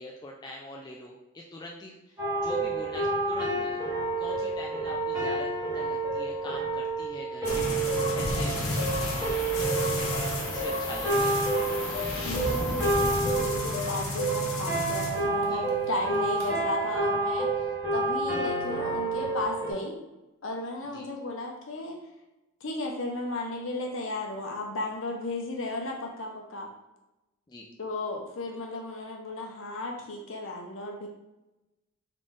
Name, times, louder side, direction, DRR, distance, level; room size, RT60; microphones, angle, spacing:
voice 1, 0.0-3.8 4.2-5.5 5.7-9.2 9.6-11.3 15.5-15.6 20.8-21.0 27.5-27.7, left 2 dB, 20° left, -1 dB, 0.3 m, -43 dB
sound 1, 2.2-19.7, right 2 dB, 15° right, 1.5 m, -29 dB
sound 2, 7.4-15.7 16.0-16.5, left 1 dB, 80° left, 1.1 m, -32 dB
voice 2, 12.2-17.6 17.9-20.0 20.4-22.0 22.6-26.7 27.8-31.1, left 2 dB, 65° left, 2 dB, 0.8 m, -34 dB
3.8 x 3.3 x 3.7 m, 0.99 s
head